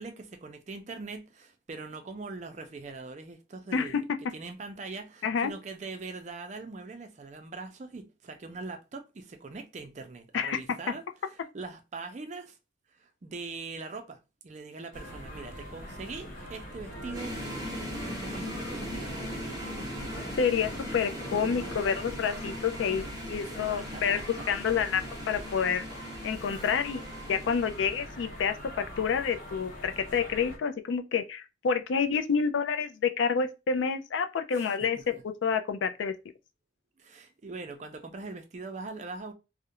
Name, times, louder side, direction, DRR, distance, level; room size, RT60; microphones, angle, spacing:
voice 1, 0.0-4.0 4.3-12.6 12.9-17.4 17.8-19.6 23.4-24.5 34.5-35.2 37.0-39.3, right 3 dB, 40° right, 0.4 m, -42 dB
voice 2, 3.7-4.2 5.2-5.5 10.3-10.6 20.4-24.2 24.5-25.8 26.2-36.1, left 6 dB, 80° left, 0.3 m, -29 dB
sound 1, 14.9-30.6, equal, 45° left, 0.8 m, -43 dB
sound 2, 16.7-21.7, equal, 20° left, 0.5 m, -42 dB
sound 3, 17.1-28.4, equal, 20° right, 0.8 m, -40 dB
2.4 x 2.1 x 2.8 m
head